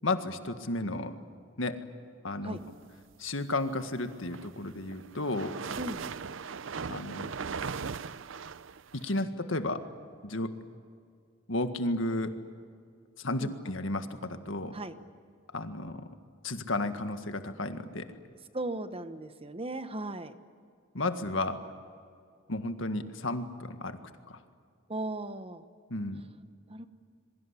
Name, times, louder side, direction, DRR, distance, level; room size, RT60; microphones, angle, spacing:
voice 1, 0.0-1.2 1.6-1.8 2.2-2.6 3.2-5.6 6.9-7.3 8.9-9.8 10.2-10.5 11.5-12.3 13.2-14.8 15.5-16.0 16.4-18.1 20.9-21.6 22.5-24.0 24.3-24.4 25.9-26.2, left 2 dB, 70° left, 8 dB, 1.8 m, -33 dB
sound 1, 4.1-9.2, right 5 dB, 65° right, 0.6 m, -38 dB
voice 2, 5.7-6.0 13.4-13.5 14.7-14.9 18.5-20.3 24.9-25.7 26.7-26.9, right 2 dB, 30° right, 10 dB, 1.1 m, -37 dB
27.0 x 23.5 x 8.4 m, 2.2 s
head